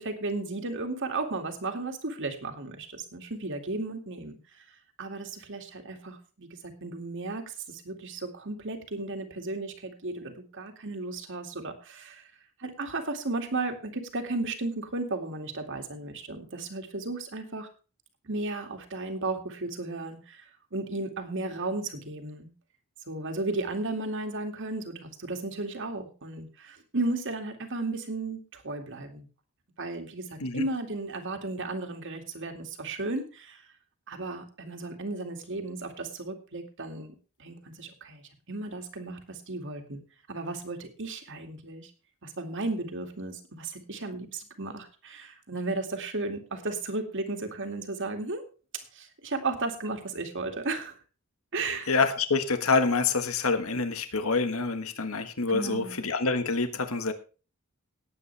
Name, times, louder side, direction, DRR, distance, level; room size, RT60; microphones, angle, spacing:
voice 1, 0.0-4.6 5.0-12.3 12.6-17.7 18.2-20.5 20.7-22.5 23.1-29.3 29.8-33.6 34.1-37.1 37.4-38.2 38.5-40.0 40.3-41.9 42.2-48.4 48.9-51.0 51.5-51.9 55.5-56.0, right 2 dB, 60° right, 5 dB, 2.4 m, -34 dB
voice 2, 51.9-57.1, left 4 dB, 70° left, 9 dB, 1.5 m, -26 dB
18.5 x 8.6 x 3.4 m, 0.35 s
head